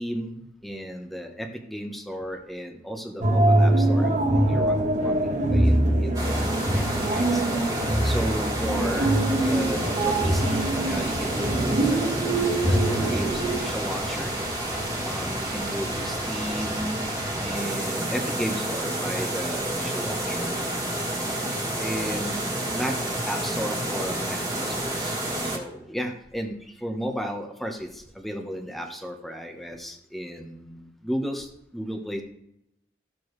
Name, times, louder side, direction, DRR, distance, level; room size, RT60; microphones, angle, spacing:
voice 1, 0.0-4.1 4.5-5.2 5.5-5.7 6.0-7.4 8.0-9.1 9.5-12.3 12.6-14.3 15.0-20.6 21.8-22.4 22.7-23.0 23.2-32.2, equal, ahead, 3 dB, 1.1 m, -34 dB
sound 1, 3.2-13.6, right 1 dB, 40° right, 1.6 m, -23 dB
sound 2, 6.1-25.6, right 1 dB, 20° right, 2.2 m, -30 dB
14.5 x 6.9 x 3.2 m, 0.78 s
head